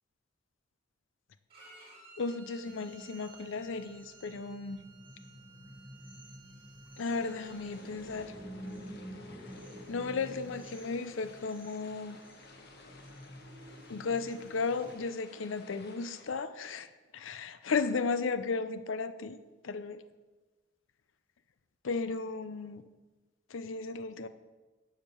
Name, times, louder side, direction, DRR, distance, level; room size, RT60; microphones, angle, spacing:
Bowed string instrument, 1.5-7.8, right 4 dB, 30° right, 3.1 m, -57 dB
voice 1, 2.2-4.8 7.0-8.3 9.9-12.2 13.9-16.9 17.1-19.4 19.6-20.0 21.8-22.8 23.5-24.3, left 4 dB, 80° left, 12 dB, 0.5 m, -34 dB
sound 1, 2.6-14.9, equal, 10° right, 1.9 m, -50 dB
sound 2, 7.0-16.2, left 3 dB, 55° left, 1.2 m, -55 dB
11.5 x 5.0 x 6.9 m, 1.2 s
head